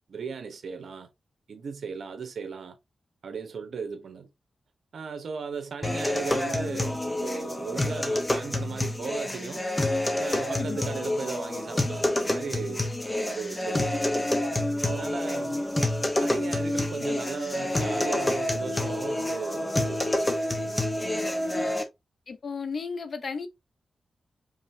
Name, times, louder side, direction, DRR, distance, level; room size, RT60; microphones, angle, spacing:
voice 1, 0.1-1.1 1.5-2.8 3.2-4.3 4.9-9.7 10.2-14.1 14.8-15.6 16.2-20.2 20.9-21.0 21.3-21.7, right 5 dB, 75° right, 1.2 m, -37 dB
sound 1, 5.8-21.8, left 1 dB, 20° left, 1.1 m, -28 dB
voice 2, 15.3-15.7 21.0-21.8 22.3-23.5, left 5 dB, 60° left, 0.8 m, -36 dB
5.4 x 3.3 x 2.8 m
wide cardioid pair, 95°, 0 cm